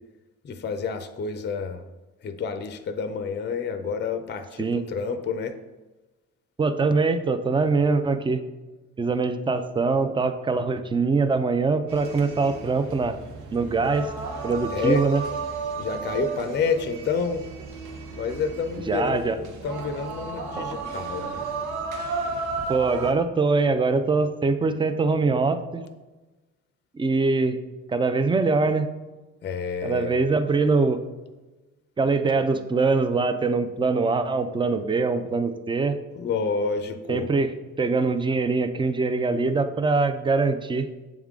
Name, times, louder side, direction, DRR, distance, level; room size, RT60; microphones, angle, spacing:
voice 1, 0.4-1.8 2.2-5.6 14.7-15.0 15.8-17.4 18.1-21.4 29.4-30.2 36.1-37.3, left 5 dB, 35° left, 8 dB, 0.5 m, -29 dB
voice 2, 6.6-8.4 9.0-13.2 13.5-14.1 14.4-15.2 18.9-19.4 20.6-20.7 22.7-25.9 26.9-27.6 27.9-28.9 29.8-31.0 32.0-36.0 37.1-37.5 37.8-40.9, right 4 dB, 15° right, 10 dB, 0.4 m, -23 dB
sound 1, 11.9-23.1, right 4 dB, 80° right, 0.9 m, -34 dB
7.3 x 3.6 x 3.6 m, 1.2 s
cardioid pair, 90°, 30 cm